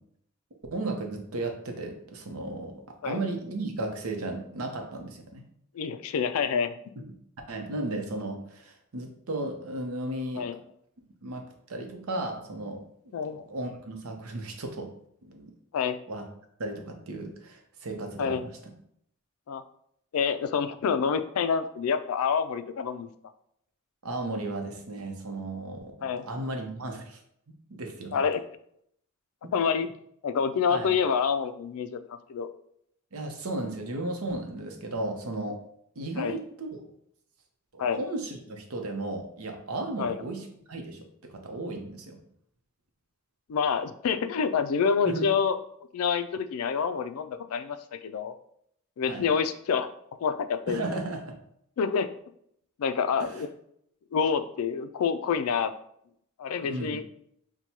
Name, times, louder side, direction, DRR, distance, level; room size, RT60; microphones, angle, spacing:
voice 1, 0.7-5.4 7.5-10.5 11.2-12.8 13.3-14.9 15.2-15.5 16.1-16.3 16.6-18.7 24.0-27.2 27.7-28.2 30.7-30.9 33.1-35.6 36.0-36.7 37.7-42.2 45.0-45.2 49.1-49.2 50.7-51.4 53.2-53.4 56.6-57.0, right 2 dB, 85° right, 4 dB, 0.7 m, -35 dB
voice 2, 5.7-6.8 10.4-10.6 13.1-13.4 15.7-16.0 18.2-18.4 19.5-19.6 20.1-23.1 26.0-26.3 28.1-28.4 29.5-29.9 30.2-32.5 36.2-36.4 37.8-38.0 40.0-40.2 43.5-45.6 45.9-48.3 49.0-49.9 50.2-50.8 51.8-52.1 52.8-53.5 54.1-55.7 56.4-57.0, left 6 dB, 80° left, 10 dB, 0.3 m, -27 dB
6.0 x 2.2 x 2.7 m, 0.71 s
head